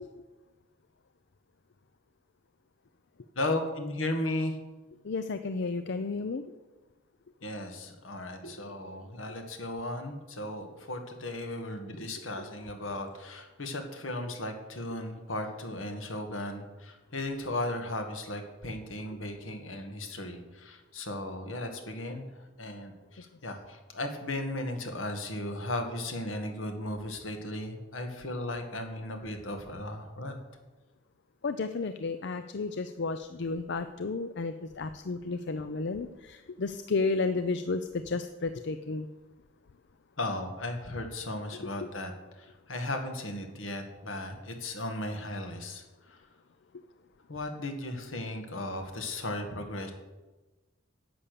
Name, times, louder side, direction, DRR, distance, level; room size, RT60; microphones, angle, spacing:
voice 1, 3.3-4.6 7.4-30.4 40.2-46.2 47.3-49.9, left 1 dB, 80° left, 5 dB, 1.9 m, -36 dB
voice 2, 5.0-6.4 31.4-39.1, left 3 dB, 60° left, 10 dB, 0.5 m, -32 dB
11.0 x 8.5 x 6.8 m, 1.2 s
head